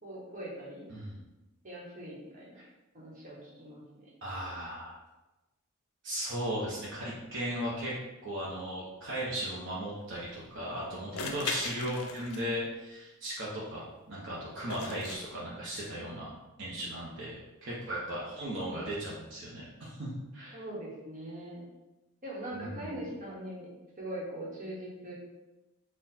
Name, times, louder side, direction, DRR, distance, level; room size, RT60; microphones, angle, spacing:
voice 1, 0.0-0.9 1.6-2.6 2.9-4.1 11.3-11.4 20.5-21.6 22.2-23.7 24.0-25.1, right 1 dB, 40° right, -5 dB, 1.2 m, -41 dB
voice 2, 0.9-1.3 2.6-2.7 4.2-4.9 6.0-7.9 8.2-16.3 16.6-20.6 22.5-23.0, equal, 60° right, -7 dB, 0.9 m, -37 dB
sound 1, 10.0-10.1 11.2-12.7 14.7-15.2, left 4 dB, 90° left, 0.6 m, -38 dB
4.3 x 2.4 x 4.1 m, 1.0 s
head